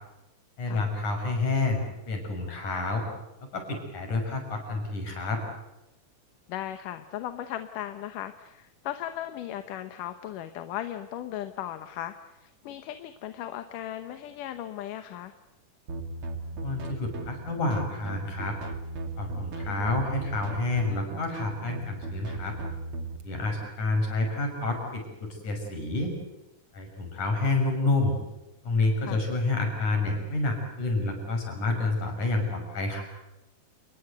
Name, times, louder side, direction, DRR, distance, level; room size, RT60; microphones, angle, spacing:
voice 1, 0.6-3.0 3.5-5.4 16.6-18.6 19.2-22.6 23.2-26.1 26.7-28.2 28.6-33.0, left 2 dB, 70° left, 3 dB, 7.7 m, -29 dB
voice 2, 6.5-15.3 19.7-19.9 29.0-29.2, left 12 dB, 90° left, 9 dB, 2.7 m, -37 dB
sound 1, 15.9-23.2, right 2 dB, 45° right, 3.2 m, -37 dB
29.5 x 20.5 x 8.1 m, 0.97 s
omnidirectional pair, 3.6 m